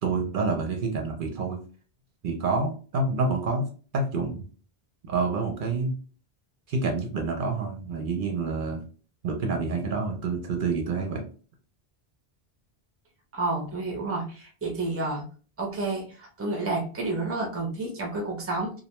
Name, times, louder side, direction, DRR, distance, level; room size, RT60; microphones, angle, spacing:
voice 1, 0.0-1.6 2.2-3.6 3.9-4.5 5.0-5.9 6.7-8.8 9.2-11.2, right 3 dB, 60° right, 2 dB, 0.7 m, -28 dB
voice 2, 13.3-15.2 15.6-18.7, right 2 dB, 20° right, 1 dB, 0.5 m, -30 dB
2.4 x 2.1 x 2.9 m, 0.39 s
omnidirectional pair, 1.0 m